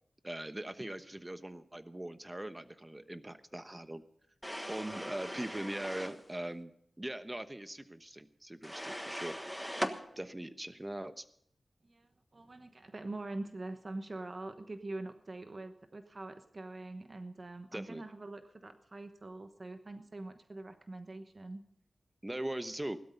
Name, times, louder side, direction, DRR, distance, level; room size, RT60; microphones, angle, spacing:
voice 1, 0.2-4.0 4.7-6.7 7.0-9.4 10.2-11.2 17.7-18.0 22.2-23.0, right 1 dB, 20° right, 10 dB, 1.1 m, -41 dB
sound 1, 4.4-6.2 8.6-10.0, equal, ahead, 1.4 m, -39 dB
voice 2, 11.8-21.6, right 2 dB, 45° right, 8 dB, 1.1 m, -44 dB
17.0 x 12.5 x 5.4 m, 0.68 s
wide cardioid pair, 65°, 0 cm